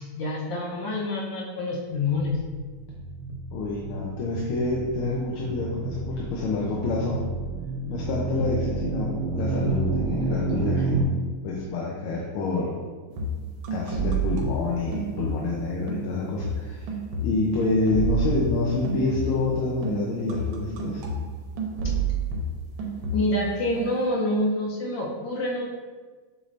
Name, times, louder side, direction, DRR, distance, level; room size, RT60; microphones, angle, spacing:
voice 1, 0.0-2.4 21.8-21.9 23.1-25.7, left 1 dB, 65° left, -3 dB, 1.4 m, -27 dB
sound 1, 1.9-11.0, right 3 dB, 65° right, 1.1 m, -30 dB
voice 2, 3.5-7.2 7.9-11.0 11.4-12.8 13.7-16.9 17.2-21.0, left 3 dB, 80° left, -3 dB, 1.5 m, -27 dB
sound 2, 13.1-15.6 15.9-19.5 19.8-23.5 23.8-24.1, right 3 dB, 85° right, 1.6 m, -30 dB
6.5 x 3.1 x 2.5 m, 1.4 s
omnidirectional pair, 2.4 m